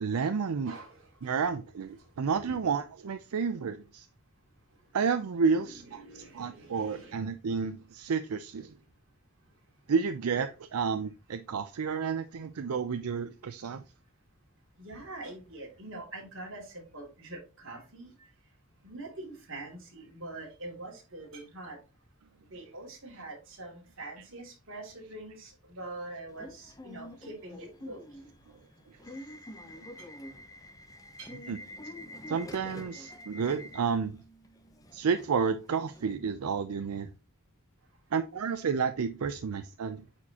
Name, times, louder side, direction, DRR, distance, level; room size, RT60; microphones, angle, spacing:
voice 1, 0.0-0.7 1.2-4.1 4.9-8.7 9.9-13.8 31.5-31.6 32.3-34.2 34.9-37.1 38.1-40.0, right 5 dB, 85° right, 0.5 m, -31 dB
voice 2, 0.6-1.3 2.4-2.6 5.6-7.2 14.8-18.1 18.8-21.8 22.5-28.3 31.2-31.3, right 2 dB, 60° right, 2.6 m, -44 dB
Subway metro underground / Alarm, 26.3-36.1, left 1 dB, 15° left, 0.7 m, -47 dB
8.8 x 4.4 x 2.8 m
head